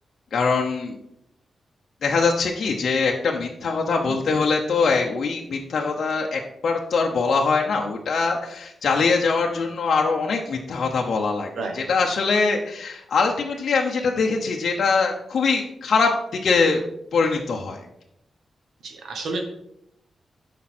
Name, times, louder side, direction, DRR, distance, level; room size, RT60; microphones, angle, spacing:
voice 1, 0.3-1.0 2.0-11.5 11.7-16.1 16.4-16.8 17.1-17.9, left 4 dB, 60° left, 0 dB, 0.9 m, -22 dB
voice 2, 18.8-19.4, right 3 dB, 75° right, 3 dB, 1.2 m, -30 dB
11.5 x 5.3 x 4.4 m, 0.78 s
wide cardioid pair, 165°, 0 cm